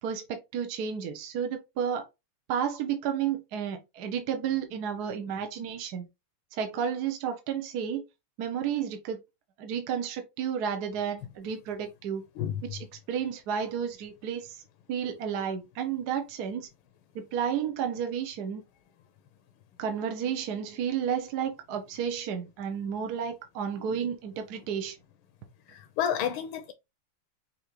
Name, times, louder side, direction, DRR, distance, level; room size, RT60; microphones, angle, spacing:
voice 1, 0.0-2.1 2.5-6.1 6.5-8.0 8.4-9.2 9.6-12.2 12.6-14.6 14.9-16.7 17.1-18.6 19.8-25.0, right 8 dB, 65° right, 1.0 m, -32 dB
voice 2, 25.7-26.7, left 9 dB, 75° left, 1.3 m, -30 dB
5.7 x 2.7 x 3.0 m
omnidirectional pair, 2.4 m